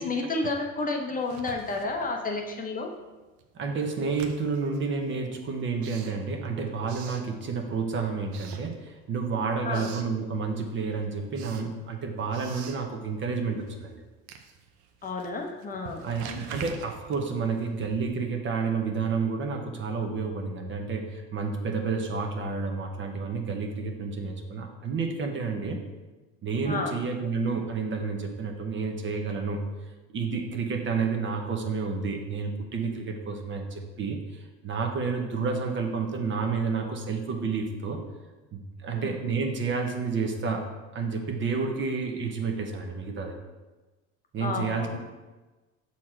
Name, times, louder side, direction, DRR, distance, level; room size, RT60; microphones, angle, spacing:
voice 1, 0.0-2.9 9.6-9.9 15.0-16.0 26.6-26.9 38.9-39.1 44.4-45.0, left 3 dB, 25° left, 2 dB, 0.8 m, -31 dB
Writing, 1.2-2.7 3.0-7.8 8.2-9.2 9.5-10.2 10.6-18.3, right 7 dB, 85° right, 0.7 m, -46 dB
voice 2, 3.5-14.0 16.0-25.8 26.4-29.6 30.1-38.0 38.5-43.4 44.3-45.0, right 4 dB, 40° right, 3 dB, 1.0 m, -30 dB
6.2 x 4.3 x 4.4 m, 1.2 s
supercardioid pair, 105°, 32 cm